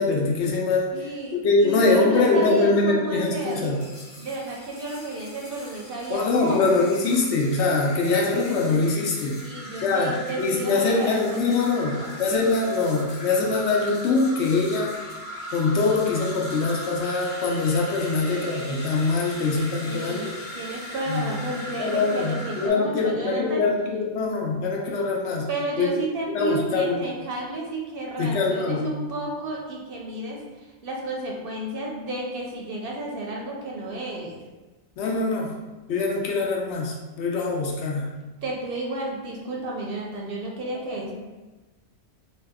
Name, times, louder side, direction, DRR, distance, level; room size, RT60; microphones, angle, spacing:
voice 1, 0.0-3.8 6.1-9.4 9.8-10.1 10.4-15.0 15.5-20.3 21.1-21.3 21.8-25.5 25.8-25.9 26.3-27.0 28.2-28.9 35.0-35.5 35.9-38.1 41.1-41.2, left 3 dB, 75° left, -1 dB, 0.9 m, -23 dB
voice 2, 0.9-3.8 4.2-6.8 9.4-12.2 18.1-18.3 19.9-20.3 20.5-23.7 25.5-34.4 38.4-41.1, right 2 dB, 60° right, -2 dB, 0.7 m, -32 dB
sound 1, 3.2-22.7, equal, 45° left, 0.4 m, -39 dB
2.7 x 2.1 x 3.4 m, 1.2 s
omnidirectional pair, 1.2 m